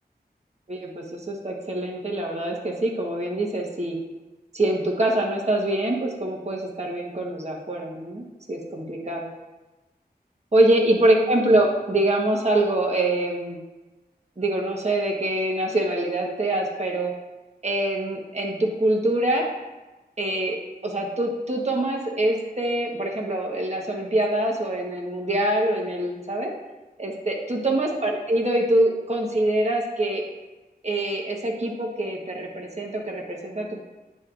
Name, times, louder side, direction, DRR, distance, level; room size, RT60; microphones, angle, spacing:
voice 1, 0.7-4.0 4.5-9.3 10.5-13.6 14.4-17.1 17.6-19.5 20.2-20.6 20.8-26.5 27.0-30.2 30.8-33.8, right 1 dB, 40° right, -1 dB, 1.2 m, -24 dB
9.8 x 4.2 x 2.5 m, 1.1 s
wide cardioid pair, 60°, 17 cm